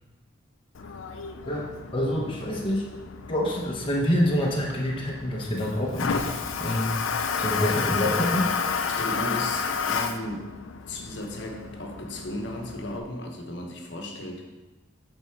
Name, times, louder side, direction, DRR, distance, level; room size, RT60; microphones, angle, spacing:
Toilet flush, 0.7-13.0, left 5 dB, 80° left, 0.5 m, -31 dB
voice 1, 1.5-2.9 3.3-6.9 7.4-8.5, equal, 25° left, -2 dB, 1.0 m, -27 dB
voice 2, 8.8-10.5 10.9-14.4, left 1 dB, 60° left, 2 dB, 1.1 m, -35 dB
8.9 x 3.8 x 4.6 m, 1.2 s
head